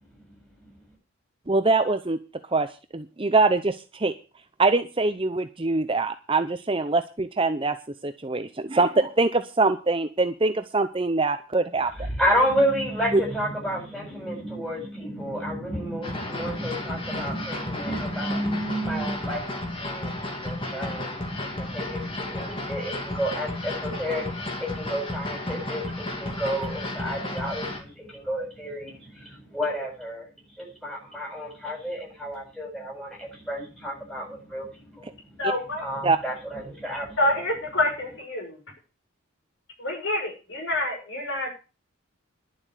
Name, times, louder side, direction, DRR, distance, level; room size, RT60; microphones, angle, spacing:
voice 1, 1.5-2.2 2.5-4.1 4.6-7.8 8.0-11.9 13.1-13.2 35.4-35.5 36.0-36.2, right 3 dB, 25° right, 9 dB, 0.6 m, -23 dB
voice 2, 12.0-30.3 30.6-35.1 35.5-37.5, equal, 5° left, -2 dB, 7.6 m, -31 dB
sound 1, 16.0-27.8, left 1 dB, 25° left, 2.6 m, -33 dB
voice 3, 35.4-35.8 37.2-38.6 39.8-41.5, left 1 dB, 55° left, 1 dB, 6.5 m, -27 dB
11.5 x 7.6 x 8.2 m, 0.33 s
head